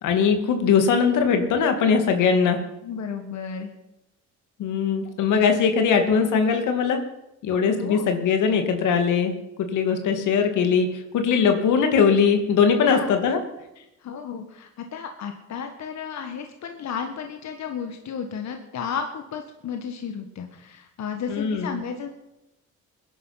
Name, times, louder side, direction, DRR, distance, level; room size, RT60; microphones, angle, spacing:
voice 1, 0.0-2.6 4.6-7.0 7.4-13.4 21.3-21.8, left 6 dB, 85° left, 6 dB, 2.3 m, -21 dB
voice 2, 2.8-3.7 7.8-8.1 12.8-13.1 13.8-22.1, left 6 dB, 65° left, 5 dB, 1.7 m, -33 dB
21.0 x 11.0 x 5.9 m, 0.90 s
cardioid pair, 90°, 30 cm